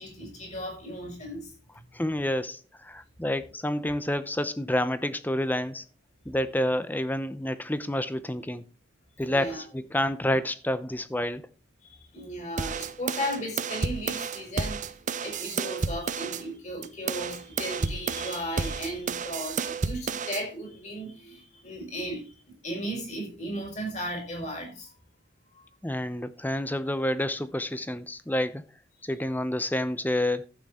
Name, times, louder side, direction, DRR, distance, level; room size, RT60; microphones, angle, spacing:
voice 1, 0.0-1.5 9.2-9.6 11.8-14.9 15.2-24.9 25.5-25.6, equal, 35° left, 5.3 m, -36 dB
voice 2, 1.9-5.8 6.3-8.6 9.2-11.4 25.8-28.6 29.0-30.4, left 1 dB, 10° left, 0.7 m, -29 dB
sound 1, 12.6-16.4 16.8-20.4, right 5 dB, 35° right, 0.7 m, -31 dB
11.5 x 8.8 x 4.3 m
head